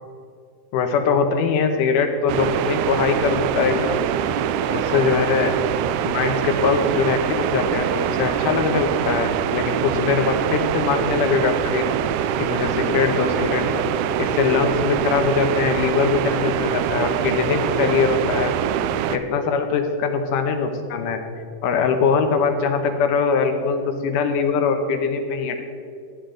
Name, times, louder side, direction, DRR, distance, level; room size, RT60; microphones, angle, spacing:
voice 1, 0.7-4.1 4.7-5.5 6.0-11.9 12.4-13.9 14.2-18.5 19.1-21.2 21.6-25.6, left 5 dB, 80° left, 6 dB, 2.5 m, -22 dB
sound 1, 2.3-19.2, right 10 dB, 80° right, 1.9 m, -24 dB
14.0 x 9.9 x 3.9 m, 2.3 s
omnidirectional pair, 3.7 m